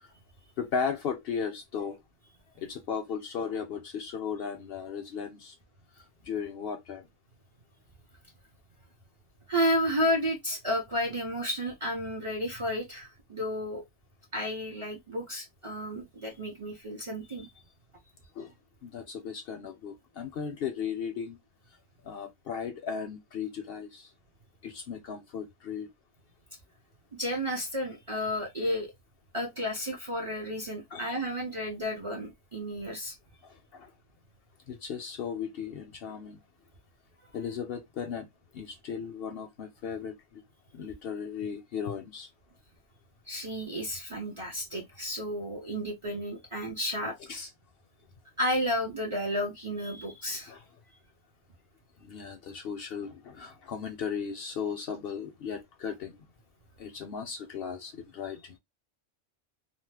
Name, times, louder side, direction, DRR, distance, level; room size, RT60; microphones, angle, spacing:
voice 1, 0.6-2.0 2.6-5.6 6.0-7.1 18.4-18.5 18.8-21.4 22.0-24.1 24.6-25.9 30.9-31.1 33.4-33.9 34.7-36.4 37.3-38.3 38.5-40.4 40.7-42.3 47.3-47.5 50.5-50.6 52.0-56.3 56.8-58.6, left 6 dB, 60° left, 0.7 m, -36 dB
voice 2, 9.5-13.8 14.3-17.5 27.1-28.9 29.3-33.1 43.3-47.2 48.4-50.5, equal, 35° right, 0.5 m, -32 dB
2.9 x 2.0 x 3.2 m
omnidirectional pair, 1.3 m